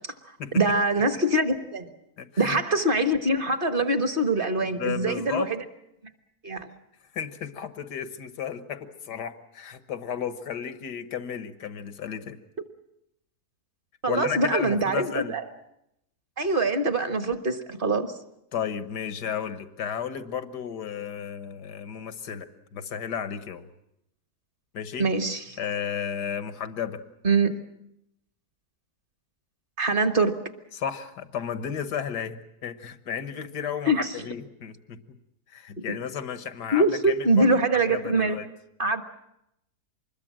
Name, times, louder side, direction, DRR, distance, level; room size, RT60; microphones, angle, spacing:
voice 1, 0.5-1.9 2.4-5.6 6.4-6.7 14.0-15.4 16.4-18.1 25.0-25.6 27.2-27.5 29.8-30.4 33.9-34.1 35.9-36.0 36.7-38.4 38.8-39.0, right 2 dB, 35° right, 9 dB, 1.6 m, -24 dB
voice 2, 2.2-2.6 4.8-5.5 7.1-12.4 14.1-15.3 18.5-23.7 24.7-25.1 25.6-27.0 30.7-33.9 34.2-35.2 35.5-38.5, left 8 dB, 85° left, 11 dB, 1.8 m, -33 dB
25.5 x 21.5 x 7.5 m, 0.81 s
omnidirectional pair, 1.7 m